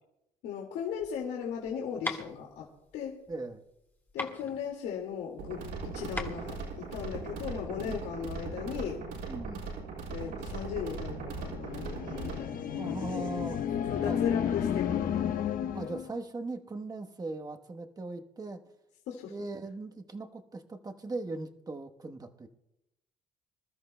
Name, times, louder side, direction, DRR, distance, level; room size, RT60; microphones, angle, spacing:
voice 1, 0.4-2.7 2.9-3.1 4.1-9.0 10.1-12.6 12.9-13.2 13.9-15.3 19.1-19.3, left 8 dB, 85° left, -1 dB, 2.1 m, -37 dB
sound 1, 0.9-7.5, left 2 dB, 10° left, 1.7 m, -41 dB
voice 2, 3.3-3.6 7.8-8.0 9.3-9.6 12.8-13.6 14.1-14.2 15.7-18.6 19.3-22.5, right 3 dB, 20° right, 5 dB, 1.1 m, -39 dB
sound 2, 5.4-12.4, right 4 dB, 80° right, 5.7 m, -39 dB
sound 3, 11.5-16.1, left 9 dB, 55° left, 1.1 m, -32 dB
26.0 x 13.5 x 2.2 m, 0.89 s
cardioid pair, 110°, 17 cm